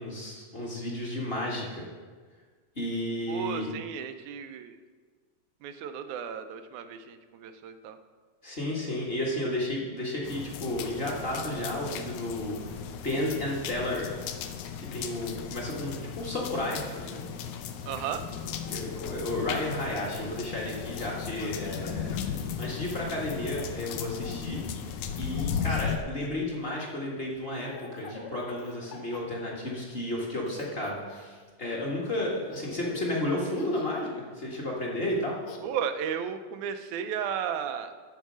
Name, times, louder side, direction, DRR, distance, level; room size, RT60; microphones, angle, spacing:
voice 1, 0.0-1.8 2.7-3.7 8.4-14.1 14.8-17.3 18.7-22.2 22.6-24.6 25.2-35.4, left 1 dB, 25° left, -3 dB, 1.3 m, -32 dB
voice 2, 3.3-4.8 5.6-8.0 17.9-18.2 35.6-37.9, right 8 dB, 85° right, 8 dB, 2.1 m, -34 dB
sound 1, 10.2-26.0, left 8 dB, 85° left, 2.1 m, -36 dB
Laughter, 16.8-19.2 19.8-20.2 20.6-22.3 23.1-24.6 25.2-30.0 30.5-31.4 32.1-32.2 32.5-33.1 33.5-34.1 35.1-35.6, left 4 dB, 65° left, 1.6 m, -48 dB
13.5 x 4.7 x 6.2 m, 1.5 s
omnidirectional pair, 3.4 m